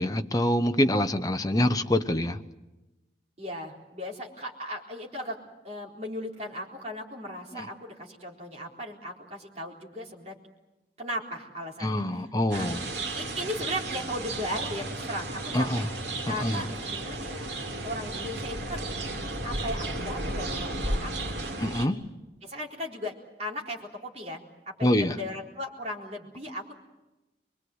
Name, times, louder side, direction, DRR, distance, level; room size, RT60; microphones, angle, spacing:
voice 1, 0.0-2.4 7.5-7.7 11.8-12.8 15.5-15.8 16.3-16.6 21.6-22.0 24.8-25.1, left 1 dB, 20° left, 7 dB, 0.9 m, -25 dB
voice 2, 3.4-5.4 5.6-10.3 11.0-12.0 12.5-12.7 13.1-15.8 16.3-17.5 17.8-18.8 19.4-21.6 22.4-23.1 23.4-26.7, equal, 35° right, -1 dB, 4.1 m, -37 dB
sound 1, 12.5-21.9, right 2 dB, 75° right, 3.3 m, -34 dB
25.0 x 23.0 x 8.1 m, 1.0 s
head